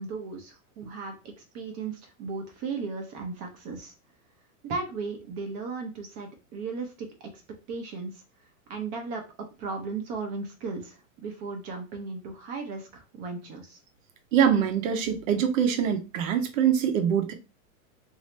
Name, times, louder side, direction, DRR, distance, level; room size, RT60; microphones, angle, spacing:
voice 1, 0.0-3.9 4.6-7.4 7.7-8.2 8.7-9.2 9.6-13.8, right 4 dB, 35° right, 0.8 m, -36 dB
voice 2, 14.3-17.3, right 8 dB, 65° right, 0.9 m, -24 dB
2.9 x 2.8 x 3.2 m
supercardioid pair, 145°, 42 cm